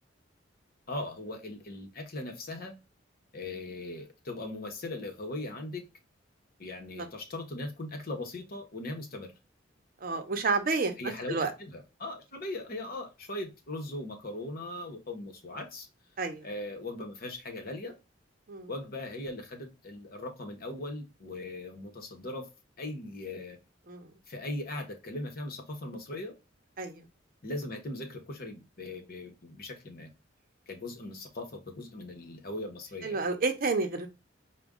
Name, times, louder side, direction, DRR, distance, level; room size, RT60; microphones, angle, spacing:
voice 1, 0.9-2.7 3.3-5.8 6.6-9.3 11.0-15.9 16.4-17.9 18.7-22.5 22.8-23.6 24.3-26.3 27.4-30.1 30.7-33.2, left 2 dB, 50° left, 1.0 m, -39 dB
voice 2, 10.0-10.9 11.3-11.5 16.2-16.4 18.5-18.7 23.9-24.1 26.8-27.0 33.0-34.1, right 3 dB, 50° right, 0.7 m, -30 dB
5.0 x 2.2 x 3.6 m
head